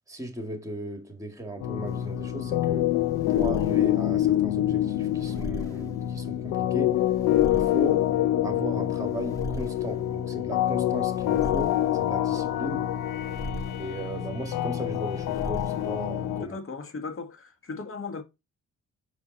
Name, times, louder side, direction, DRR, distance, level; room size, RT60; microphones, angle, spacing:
voice 1, 0.1-2.9 3.3-7.0 7.5-8.1 8.4-12.9 13.8-16.6, right 1 dB, 10° right, 2.2 m, -37 dB
sound 1, 1.6-16.4, left 12 dB, 90° left, 0.6 m, -26 dB
sound 2, 1.9-16.4, right 1 dB, 10° left, 2.0 m, -42 dB
voice 2, 16.4-18.2, left 4 dB, 45° left, 2.0 m, -37 dB
6.1 x 4.9 x 4.1 m
cardioid pair, 90°, 30 cm